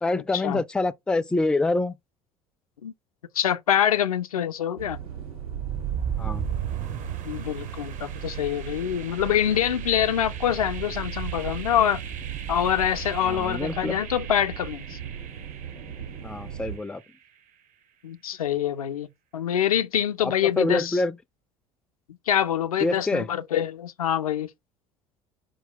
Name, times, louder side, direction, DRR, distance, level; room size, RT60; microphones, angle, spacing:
voice 1, 0.0-1.9 6.2-6.4 13.2-14.0 16.2-17.0 20.2-21.2 22.8-23.3, left 2 dB, 5° left, 0.3 m, -26 dB
voice 2, 3.3-5.0 7.2-12.0 12.5-15.0 18.0-19.1 19.3-21.0 22.3-24.5, left 10 dB, 85° left, 0.4 m, -25 dB
sound 1, 4.8-16.8, right 8 dB, 85° right, 2.0 m, -38 dB
sound 2, 5.4-17.3, right 9 dB, 45° right, 0.6 m, -36 dB
4.6 x 2.2 x 3.6 m
figure-of-eight pair, 65°, 18 cm